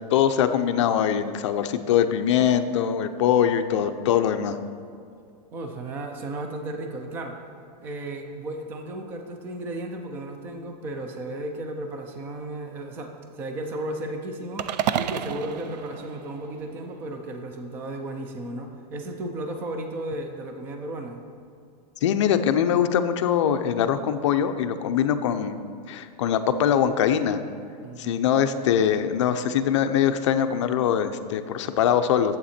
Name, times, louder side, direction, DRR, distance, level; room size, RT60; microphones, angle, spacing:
voice 1, 0.1-4.6 22.0-25.6 25.9-27.4 28.0-32.4, left 9 dB, 45° left, 9 dB, 0.5 m, -22 dB
voice 2, 5.5-7.4 7.8-21.2 27.8-28.2, right 1 dB, 10° right, 4 dB, 0.4 m, -34 dB
sound 1, 14.6-16.9, right 10 dB, 85° right, 0.5 m, -30 dB
11.5 x 8.0 x 4.3 m, 2.3 s
supercardioid pair, 180°, 21 cm